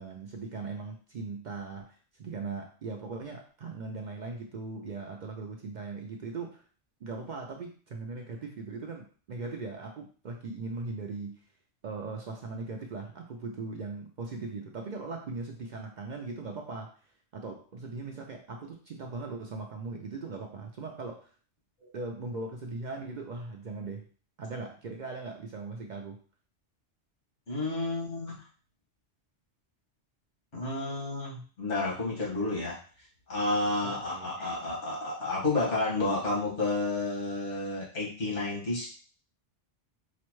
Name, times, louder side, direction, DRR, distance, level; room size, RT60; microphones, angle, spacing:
voice 1, 0.0-6.6 7.0-11.4 11.8-16.9 17.3-21.3 21.9-24.0 24.4-26.2 33.8-34.3, right 3 dB, 55° right, 2 dB, 0.5 m, -39 dB
voice 2, 27.5-28.4 30.5-32.8 33.3-38.9, left 2 dB, 85° left, -5 dB, 1.9 m, -31 dB
4.9 x 2.1 x 3.0 m, 0.40 s
omnidirectional pair, 1.2 m